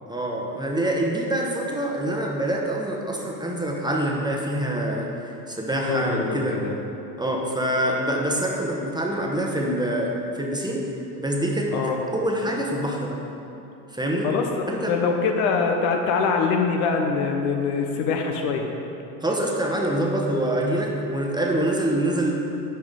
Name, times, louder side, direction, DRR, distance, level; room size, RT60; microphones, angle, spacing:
voice 1, 0.1-6.6 7.2-10.9 11.2-13.2 13.9-14.3 14.7-14.9 19.2-22.3, right 1 dB, 10° right, -1 dB, 1.1 m, -25 dB
voice 2, 5.9-6.7 11.7-12.0 14.2-18.7, left 5 dB, 65° left, 3 dB, 1.1 m, -24 dB
11.5 x 5.1 x 3.8 m, 2.8 s
hypercardioid pair, 70°, 49 cm